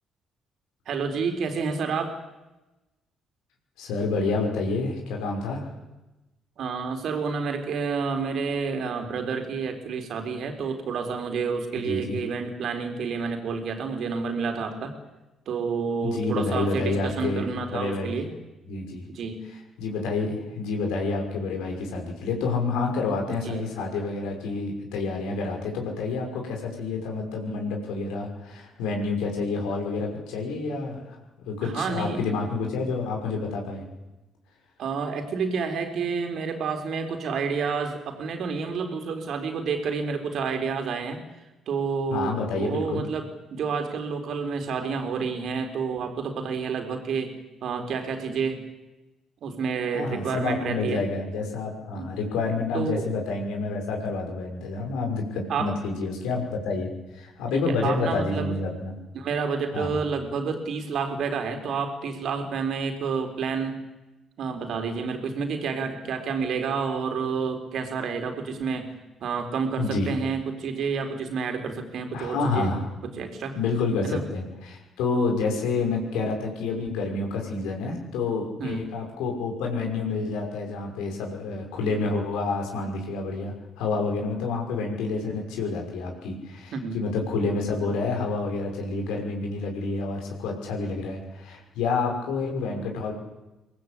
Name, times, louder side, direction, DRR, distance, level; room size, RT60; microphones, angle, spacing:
voice 1, 0.9-2.2 6.6-14.9 15.5-18.3 19.1-19.5 23.3-23.7 31.6-32.2 34.8-41.2 41.7-47.3 47.6-48.6 49.4-51.0 51.9-52.1 52.7-53.0 55.5-55.7 57.5-58.6 59.1-63.8 64.4-68.9 69.2-72.7 73.0-73.6 74.0-74.2 78.6-78.8 86.7-87.0, right 5 dB, 60° right, 6 dB, 4.1 m, -29 dB
voice 2, 3.8-5.7 11.8-12.2 16.0-17.4 17.7-18.1 18.7-19.0 19.8-31.2 31.5-33.8 42.1-43.0 49.9-58.9 59.7-60.0 69.8-70.1 72.1-72.8 73.5-93.1, left 3 dB, 70° left, 1 dB, 5.9 m, -28 dB
23.5 x 20.0 x 8.6 m, 1.0 s
hypercardioid pair, 45°, 0 cm